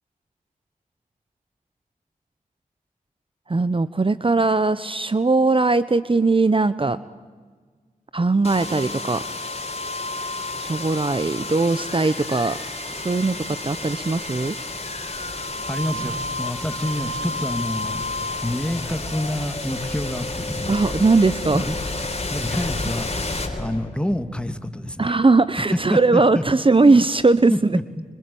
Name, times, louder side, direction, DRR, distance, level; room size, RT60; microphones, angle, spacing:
voice 1, 3.5-7.0 8.1-9.2 10.6-12.6 12.9-14.6 20.7-21.6 25.0-27.5, right 3 dB, 40° right, 15 dB, 1.0 m, -19 dB
sound 1, 8.4-24.3, left 2 dB, 45° left, 4.1 m, -30 dB
voice 2, 15.6-18.0 18.4-20.8 21.5-21.8 22.3-23.1 23.6-25.2 25.9-26.4 26.8-26.9 27.5-28.0, left 1 dB, 5° left, 9 dB, 2.4 m, -27 dB
25.5 x 24.5 x 8.7 m, 1.5 s
cardioid pair, 40°, 15 cm